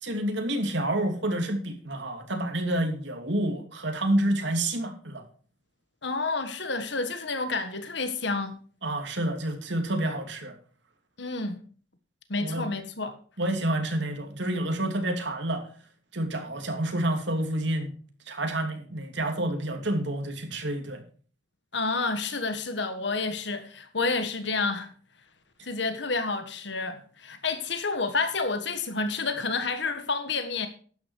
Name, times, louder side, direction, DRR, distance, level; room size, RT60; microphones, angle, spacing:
voice 1, 0.0-5.2 8.8-10.6 12.4-12.7 13.4-15.7 16.1-17.9 18.3-21.0 25.6-25.7, right 1 dB, 65° right, 2.9 m, -29 dB
voice 2, 6.0-8.6 11.2-11.6 12.3-13.2 21.7-24.9 25.6-30.7, left 3 dB, 60° left, 1.4 m, -29 dB
12.0 x 9.7 x 4.6 m
head